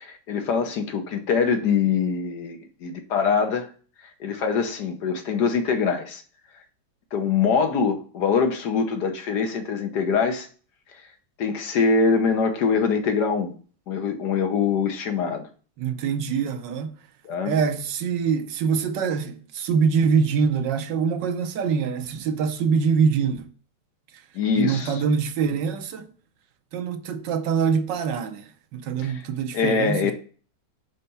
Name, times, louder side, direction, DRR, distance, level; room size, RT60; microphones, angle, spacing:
voice 1, 0.0-3.7 4.2-6.2 7.1-10.5 11.4-13.5 13.9-15.5 17.2-17.6 24.3-25.0 29.0-29.2 29.5-30.1, left 5 dB, 70° left, 1.5 m, -23 dB
voice 2, 15.8-16.9 17.5-23.5 24.5-26.1 26.7-30.1, right 6 dB, 75° right, 1.4 m, -24 dB
5.7 x 4.3 x 5.4 m
omnidirectional pair, 1.9 m